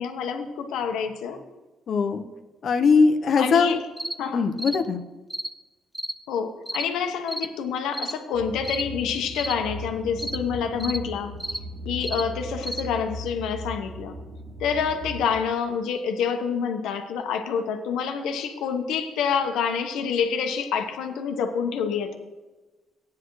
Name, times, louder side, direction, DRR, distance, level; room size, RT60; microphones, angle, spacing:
voice 1, 0.0-1.4 3.4-3.8 4.2-4.5 6.3-11.3 11.8-14.2 14.6-22.1, left 6 dB, 90° left, 5 dB, 1.1 m, -27 dB
voice 2, 1.9-2.3 2.6-3.7 4.3-5.0, left 5 dB, 60° left, 7 dB, 0.9 m, -20 dB
sound 1, 4.0-4.2 4.6-4.8 5.3-5.5 5.9-6.2 6.7-6.9 7.3-7.5 7.9-8.2 8.6-8.9 9.4-9.6 10.2-10.4 10.8-11.0 11.4-11.6 12.0-12.3 12.6-12.9, right 1 dB, 5° right, 0.5 m, -32 dB
sound 2, 8.3-15.3, equal, 85° right, 2.5 m, -38 dB
16.0 x 9.6 x 3.2 m, 1.2 s
cardioid pair, 90°, 0 cm